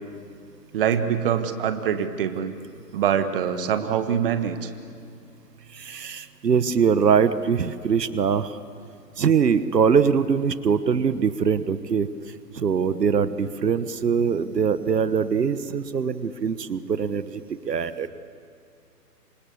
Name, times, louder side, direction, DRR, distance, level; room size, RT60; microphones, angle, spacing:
voice 1, 0.7-2.5 2.9-4.7, right 8 dB, 35° right, 9 dB, 1.4 m, -24 dB
voice 2, 5.7-8.6 9.2-12.1 12.5-18.1, right 6 dB, 80° right, 13 dB, 1.3 m, -22 dB
27.0 x 26.5 x 7.1 m, 2.4 s
hypercardioid pair, 150°, 48 cm